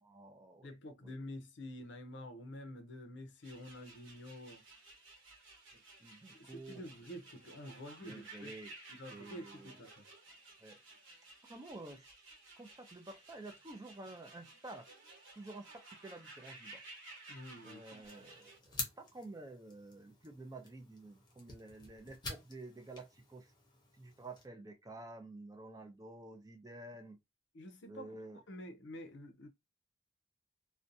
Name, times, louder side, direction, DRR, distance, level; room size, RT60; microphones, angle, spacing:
voice 1, 0.0-0.7 1.0-1.1 6.0-6.8 8.0-8.7 9.1-9.7 10.6-10.8 11.5-12.1 12.6-14.9 15.4-16.8 17.6-23.5 24.0-27.2 27.9-28.4, right 2 dB, 20° right, 0.4 m, -50 dB
voice 2, 0.6-4.6 6.3-8.5 8.9-10.1 17.3-18.3 27.5-28.2 28.5-29.5, left 1 dB, 65° left, 0.5 m, -49 dB
sound 1, 3.4-18.6, right 2 dB, 75° right, 1.1 m, -56 dB
sound 2, 18.0-24.5, left 3 dB, 20° left, 0.6 m, -48 dB
2.5 x 2.2 x 2.6 m
head